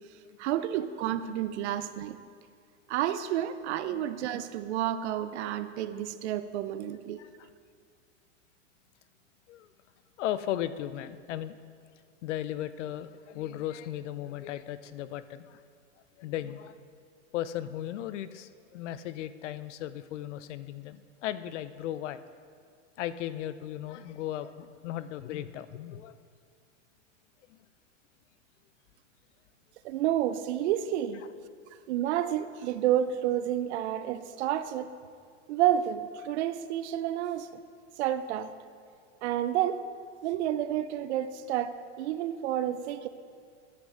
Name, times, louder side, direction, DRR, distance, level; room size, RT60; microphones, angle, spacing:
voice 1, 0.4-2.2 2.9-7.2 29.8-31.2 31.9-34.9 35.5-37.5 38.0-38.5 39.2-39.8 40.2-43.1, right 11 dB, 60° right, 12 dB, 0.6 m, -30 dB
voice 2, 10.2-11.6 12.2-15.6 16.2-16.8 17.3-22.2 23.0-26.2 27.5-27.6, left 12 dB, 70° left, 14 dB, 0.6 m, -36 dB
10.5 x 8.4 x 3.8 m, 2.1 s
hypercardioid pair, 130°, 37 cm